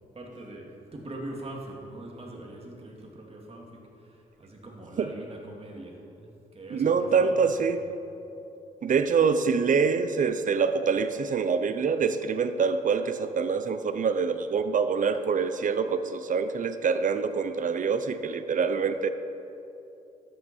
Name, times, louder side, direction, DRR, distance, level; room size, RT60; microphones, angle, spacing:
voice 1, 0.1-7.3 7.7-8.0, right 1 dB, 40° right, -1 dB, 2.5 m, -42 dB
voice 2, 6.7-7.8 8.8-19.1, right 5 dB, 55° right, 10 dB, 0.7 m, -25 dB
13.0 x 9.7 x 4.5 m, 2.9 s
cardioid pair, 65°, 16 cm